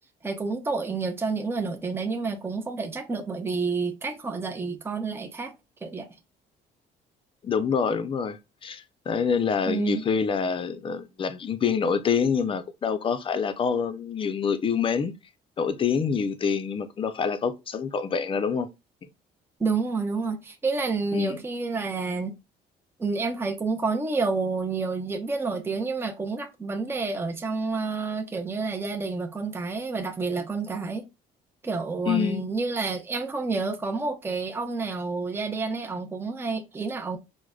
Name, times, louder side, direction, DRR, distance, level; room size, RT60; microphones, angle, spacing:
voice 1, 0.2-5.5 5.8-6.1 9.7-10.0 19.6-22.3 23.0-31.1 31.6-37.2, right 4 dB, 15° right, 0.5 m, -29 dB
voice 2, 7.4-15.1 15.6-18.7 21.1-21.4 32.1-32.4, left 6 dB, 30° left, 0.4 m, -26 dB
4.7 x 2.1 x 2.3 m
cardioid pair, 110°, 17 cm